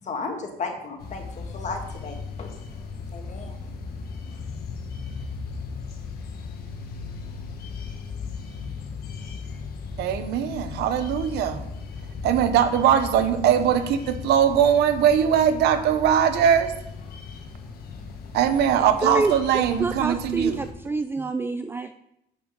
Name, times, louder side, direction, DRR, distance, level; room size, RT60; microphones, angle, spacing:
voice 1, 0.0-2.9 3.1-4.4, left 4 dB, 45° left, 3 dB, 1.8 m, -36 dB
sound 1, 1.0-20.7, left 5 dB, 65° left, 1.4 m, -37 dB
voice 2, 10.0-11.6 12.2-16.7 18.3-20.6, right 9 dB, 80° right, 10 dB, 0.9 m, -21 dB
voice 3, 19.0-21.9, right 3 dB, 15° right, 10 dB, 0.3 m, -27 dB
7.9 x 6.4 x 5.3 m, 0.83 s
cardioid pair, 110°, 17 cm